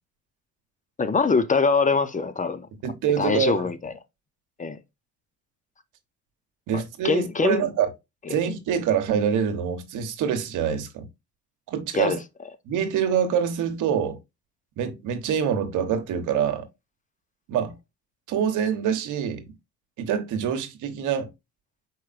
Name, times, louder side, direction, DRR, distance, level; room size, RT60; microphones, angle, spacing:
voice 1, 1.0-2.7 3.2-3.9 4.6-4.8 6.7-7.7 11.9-12.2, left 4 dB, 25° left, 0.6 m, -23 dB
voice 2, 2.8-3.7 6.7-7.9 8.3-11.1 11.7-12.2 12.6-14.2 14.8-16.6 17.5-17.7 18.3-19.5 20.0-21.3, right 8 dB, 85° right, 1.0 m, -25 dB
4.7 x 4.5 x 2.4 m
cardioid pair, 90°, 30 cm